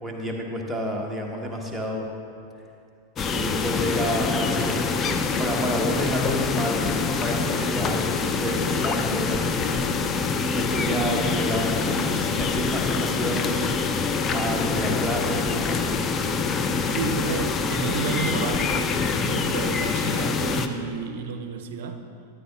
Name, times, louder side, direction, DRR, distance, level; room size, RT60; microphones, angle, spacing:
voice 1, 0.0-2.1 3.2-5.0 5.4-6.8 7.2-9.8 10.5-15.9, equal, ahead, -2 dB, 1.2 m, -29 dB
sound 1, 3.2-20.7, left 4 dB, 25° left, 0.5 m, -25 dB
voice 2, 16.9-18.9 19.2-22.0, right 6 dB, 55° right, 7 dB, 0.6 m, -31 dB
13.0 x 9.6 x 2.4 m, 2.5 s
figure-of-eight pair, 90°, 0 cm